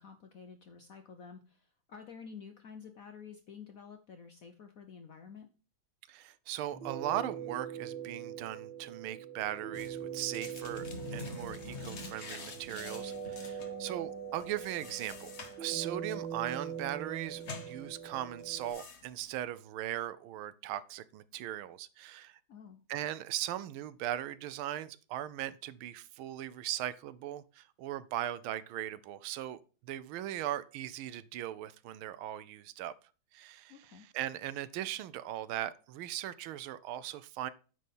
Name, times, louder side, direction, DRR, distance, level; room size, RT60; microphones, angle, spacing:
voice 1, 0.0-5.5 22.5-22.8 33.7-34.1, left 6 dB, 65° left, 6 dB, 0.8 m, -50 dB
voice 2, 6.1-10.8 11.1-15.3 15.6-22.4 22.9-32.9 33.3-33.7 34.1-37.5, right 12 dB, 80° right, 16 dB, 1.4 m, -39 dB
sound 1, 6.7-18.7, right 8 dB, 65° right, 2.2 m, -42 dB
sound 2, 9.7-19.4, left 4 dB, 40° left, 1.0 m, -47 dB
9.4 x 4.2 x 5.3 m, 0.36 s
omnidirectional pair, 2.3 m